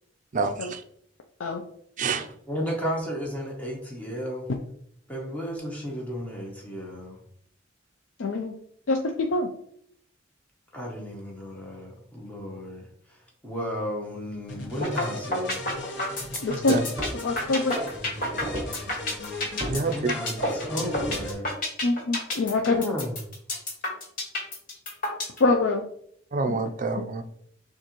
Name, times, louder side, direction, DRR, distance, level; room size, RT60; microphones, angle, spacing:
voice 1, 0.3-0.8 2.0-2.3 16.5-16.8 19.7-20.1 26.3-27.2, right 4 dB, 40° right, 8 dB, 0.4 m, -27 dB
voice 2, 2.5-4.5 5.1-7.2 10.7-12.9 13.4-15.6 19.9-21.5 22.7-23.1, equal, 10° left, -2 dB, 0.9 m, -33 dB
voice 3, 8.2-8.6 8.9-9.5 16.4-16.8 17.2-17.8 21.8-22.8 25.4-25.8 26.5-26.6, left 3 dB, 80° left, 2 dB, 0.5 m, -24 dB
sound 1, 14.5-21.3, left 1 dB, 60° left, 1.0 m, -39 dB
sound 2, 14.8-15.0 15.3-25.4, left 1 dB, 45° left, 1.7 m, -29 dB
sound 3, 16.2-16.3 17.0-17.3 17.8-18.8 19.6-19.9 20.4-21.4, equal, 20° right, 0.8 m, -34 dB
6.5 x 2.5 x 3.0 m, 0.68 s
head